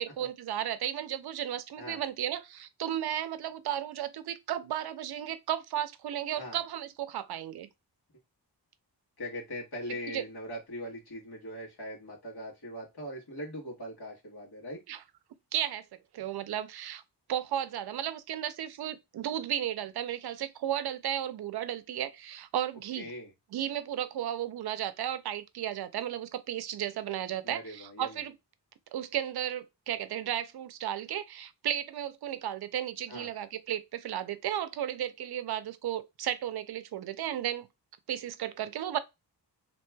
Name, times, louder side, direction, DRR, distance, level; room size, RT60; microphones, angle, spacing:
voice 1, 0.0-7.7 10.1-10.2 14.9-15.0 15.5-15.8 16.1-17.0 17.3-23.1 23.5-28.4 28.9-37.7 38.1-39.0, right 11 dB, 65° right, 0.5 m, -34 dB
voice 2, 9.2-14.8 23.0-23.3 27.4-28.2 33.1-33.3, equal, 60° left, 1.5 m, -41 dB
3.1 x 2.8 x 2.2 m
cardioid pair, 90°, 42 cm